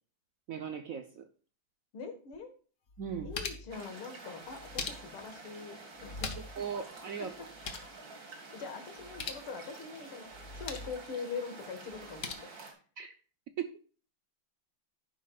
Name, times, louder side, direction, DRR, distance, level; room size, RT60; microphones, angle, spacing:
voice 1, 0.5-1.3 3.0-3.3 6.3-7.4 13.0-13.1 13.6-13.8, right 7 dB, 70° right, 7 dB, 0.8 m, -38 dB
voice 2, 1.9-2.5 3.2-6.3 7.2-7.5 8.5-10.3 10.6-12.5, left 5 dB, 80° left, 6 dB, 2.4 m, -43 dB
sound 1, 2.3-2.4 2.9-3.8 4.5-5.3 6.0-6.6 6.9-7.0 7.3-7.9 9.0-9.5 10.3-11.0 11.9-12.3, left 4 dB, 45° left, 1.1 m, -41 dB
sound 2, 3.7-12.7, right 3 dB, 45° right, 2.4 m, -49 dB
11.0 x 10.0 x 2.3 m, 0.40 s
omnidirectional pair, 2.3 m